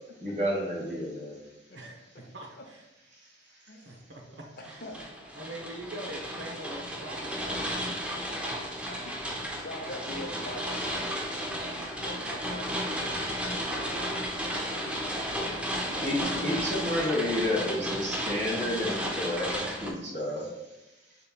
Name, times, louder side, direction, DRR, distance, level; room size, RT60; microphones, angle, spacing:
voice 1, 0.2-1.4 3.1-3.3 16.0-20.8, left 1 dB, 40° right, -4 dB, 1.4 m, -31 dB
voice 2, 2.3-2.8 3.5-4.8 5.3-7.7, right 1 dB, 70° right, 1 dB, 0.7 m, -43 dB
voice 3, 3.7-4.0 4.3-5.5 8.9-11.5 11.7-16.5, left 1 dB, 55° left, 3 dB, 0.6 m, -45 dB
sound 1, 4.6-19.9, equal, 5° right, 0.5 m, -33 dB
6.5 x 2.9 x 2.2 m, 1.0 s
head